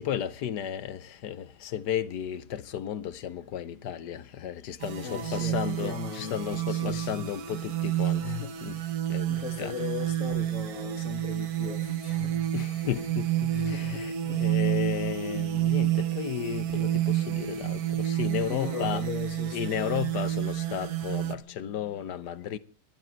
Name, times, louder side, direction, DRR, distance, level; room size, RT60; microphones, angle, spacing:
voice 1, 0.0-8.2 8.6-8.8 9.1-9.7 12.5-19.0 19.5-22.6, left 10 dB, 70° left, 1.4 m, -34 dB
sound 1, 4.8-21.3, right 13 dB, 60° right, 1.5 m, -30 dB
voice 2, 5.0-7.3 8.2-9.0 9.3-12.5 12.8-13.0 13.5-14.5 18.5-20.1, left 7 dB, 45° left, 1.9 m, -38 dB
20.0 x 12.0 x 4.5 m
omnidirectional pair, 2.0 m